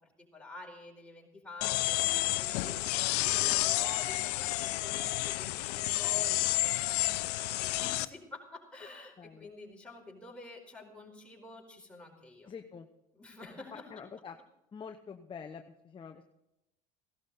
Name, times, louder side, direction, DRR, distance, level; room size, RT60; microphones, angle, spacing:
voice 1, 0.0-12.5 13.1-13.9, left 2 dB, 5° left, -2 dB, 4.5 m, -49 dB
sound 1, 1.6-8.1, left 18 dB, 85° left, 0.6 m, -30 dB
voice 2, 9.2-9.5 12.5-12.9 13.7-14.4 14.7-16.2, left 6 dB, 25° left, 5 dB, 0.9 m, -46 dB
16.5 x 12.0 x 4.1 m, 0.91 s
supercardioid pair, 90°, 20 cm